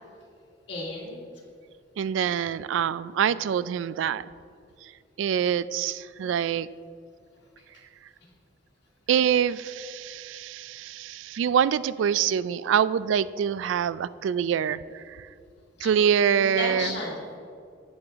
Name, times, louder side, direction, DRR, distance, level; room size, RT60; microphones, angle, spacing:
voice 1, 0.7-1.2 15.8-16.1 16.4-17.4, left 2 dB, 65° left, -4 dB, 2.6 m, -34 dB
voice 2, 2.0-4.2 5.2-6.7 9.1-14.8 15.8-16.9, right 8 dB, 85° right, 18 dB, 0.3 m, -25 dB
10.5 x 8.6 x 3.5 m, 2.3 s
head